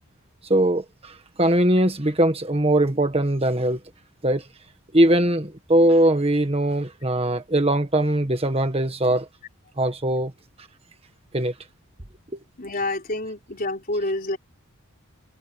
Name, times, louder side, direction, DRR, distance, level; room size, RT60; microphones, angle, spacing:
voice 1, 0.5-3.8 4.2-4.5 4.9-9.3 9.8-10.3 11.3-11.5 12.3-12.4, right 1 dB, 25° right, 1.6 m, -21 dB
voice 2, 12.6-14.4, left 2 dB, 40° left, 4.4 m, -28 dB
head